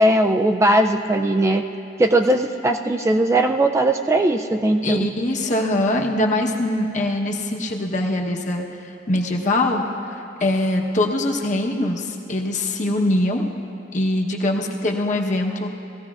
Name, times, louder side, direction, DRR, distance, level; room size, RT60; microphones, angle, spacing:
voice 1, 0.0-1.6 2.0-5.1, right 1 dB, 15° right, 4 dB, 0.3 m, -19 dB
voice 2, 4.8-9.8 10.1-13.5 13.9-15.7, left 1 dB, 40° left, 1 dB, 1.0 m, -23 dB
18.5 x 14.5 x 2.4 m, 2.7 s
head